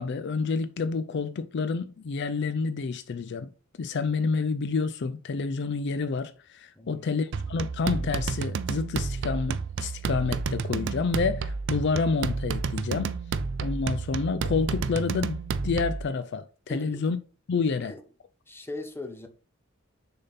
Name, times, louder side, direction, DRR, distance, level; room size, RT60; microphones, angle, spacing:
voice 1, 0.0-3.5 3.8-13.2 13.6-17.2 17.5-17.9, left 4 dB, 55° left, 0.4 m, -29 dB
voice 2, 6.7-7.1 16.7-17.0 17.8-18.0 18.5-19.3, left 2 dB, 10° left, 0.8 m, -39 dB
sound 1, 7.3-16.1, right 4 dB, 60° right, 0.4 m, -31 dB
6.6 x 4.0 x 4.1 m
head